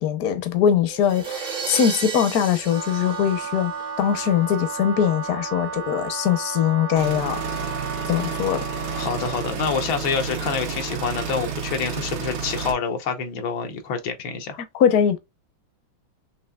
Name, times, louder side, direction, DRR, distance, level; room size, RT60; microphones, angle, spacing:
voice 1, 0.0-3.7 4.0-7.4 8.1-8.6 14.7-15.2, left 8 dB, 60° left, 1.1 m, -21 dB
sound 1, 0.9-4.1, right 5 dB, 45° right, 0.6 m, -33 dB
Wind instrument woodwind instrument, 2.6-9.6, right 4 dB, 60° right, 0.9 m, -33 dB
sound 2, 7.0-12.7, right 6 dB, 80° right, 1.7 m, -31 dB
voice 2, 8.9-14.6, left 6 dB, 80° left, 1.7 m, -27 dB
5.4 x 3.1 x 2.3 m
omnidirectional pair, 2.2 m